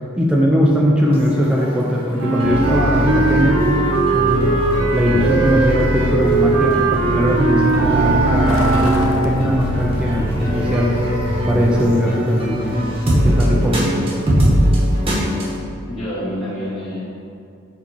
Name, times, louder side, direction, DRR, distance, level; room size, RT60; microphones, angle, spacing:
voice 1, 0.2-3.5 4.1-10.9 11.5-12.8 13.2-14.0, equal, 5° right, -3 dB, 0.4 m, -19 dB
sound 1, 1.1-15.6, equal, 25° right, 1.0 m, -21 dB
Wind instrument woodwind instrument, 2.2-9.5, right 4 dB, 90° right, 0.6 m, -20 dB
Truck, 4.3-11.9, left 2 dB, 65° left, 0.5 m, -29 dB
voice 2, 15.9-17.0, equal, 25° left, -11 dB, 1.1 m, -28 dB
5.1 x 3.9 x 5.2 m, 2.4 s
head